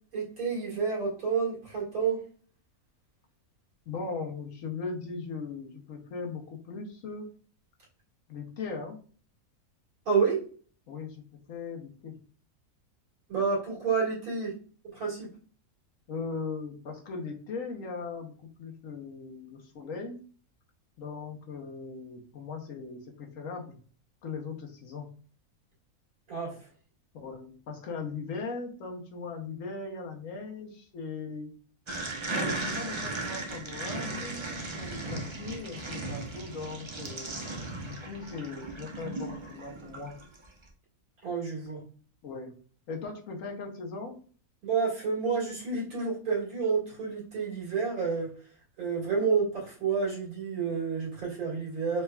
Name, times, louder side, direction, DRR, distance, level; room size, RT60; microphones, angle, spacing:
voice 1, 0.1-2.2 10.1-10.4 13.3-14.5 14.9-15.3 26.3-26.5 41.2-41.8 44.6-48.3 48.8-52.0, right 5 dB, 75° right, -5 dB, 2.4 m, -29 dB
voice 2, 3.9-7.3 8.3-9.0 10.9-12.1 16.1-20.2 21.0-23.8 24.2-25.1 27.1-31.5 32.3-37.3 37.8-40.1 42.2-42.5 42.9-44.2, left 4 dB, 65° left, 3 dB, 1.2 m, -39 dB
sound 1, 31.9-40.5, right 2 dB, 35° right, 0.4 m, -36 dB
4.6 x 3.3 x 2.3 m, 0.43 s
omnidirectional pair, 1.5 m